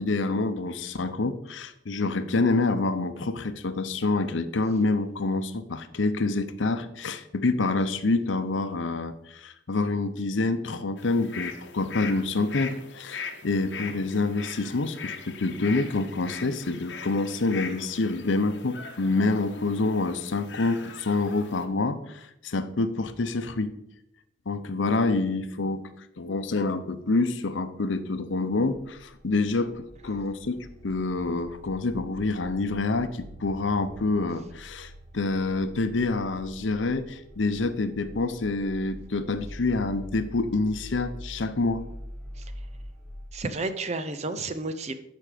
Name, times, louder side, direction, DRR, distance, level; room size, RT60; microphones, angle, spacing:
voice 1, 0.0-23.7 24.5-25.8 26.2-41.8, left 3 dB, 80° left, 11 dB, 0.7 m, -27 dB
sound 1, 11.0-21.6, left 5 dB, 65° left, 1.1 m, -40 dB
sound 2, 28.6-43.3, equal, ahead, 1.9 m, -44 dB
voice 2, 43.3-44.9, right 3 dB, 35° right, 10 dB, 0.7 m, -32 dB
12.0 x 5.2 x 5.0 m, 0.81 s
head